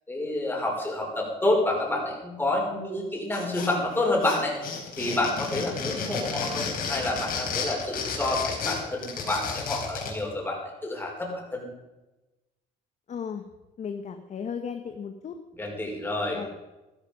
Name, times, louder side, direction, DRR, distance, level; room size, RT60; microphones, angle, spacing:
voice 1, 0.1-4.6 5.0-11.7 15.6-16.4, left 2 dB, 10° left, -1 dB, 5.5 m, -28 dB
sound 1, 3.3-4.0 4.2-10.2, left 5 dB, 60° left, 4.5 m, -32 dB
voice 2, 13.1-13.4 13.8-15.4 16.3-16.5, left 7 dB, 45° left, 6 dB, 1.3 m, -35 dB
14.0 x 13.5 x 5.3 m, 1.0 s
cardioid pair, 110°, 17 cm